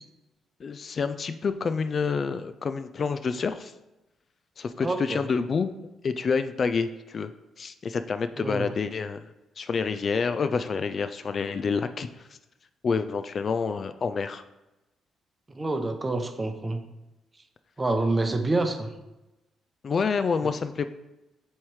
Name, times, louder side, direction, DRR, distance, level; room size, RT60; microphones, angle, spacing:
voice 1, 0.6-3.7 4.6-5.7 6.0-7.3 7.6-9.2 9.6-12.3 12.8-14.4 19.8-20.8, left 5 dB, 45° left, 10 dB, 0.3 m, -28 dB
voice 2, 4.8-5.3 8.4-8.7 15.5-16.8 17.8-18.9 20.4-20.5, right 2 dB, 20° right, 6 dB, 0.7 m, -27 dB
7.2 x 3.2 x 4.7 m, 0.99 s
cardioid pair, 90°, 0 cm